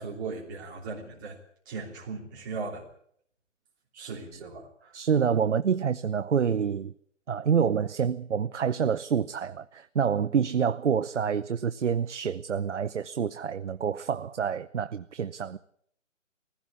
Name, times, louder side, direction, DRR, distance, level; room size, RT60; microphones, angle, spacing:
voice 1, 0.0-1.4 1.6-2.9 3.9-5.0, right 4 dB, 15° right, 3.1 m, -38 dB
voice 2, 4.9-6.9 7.3-15.6, right 7 dB, 65° right, 0.8 m, -27 dB
19.5 x 16.0 x 8.5 m
hypercardioid pair, 170°, 38 cm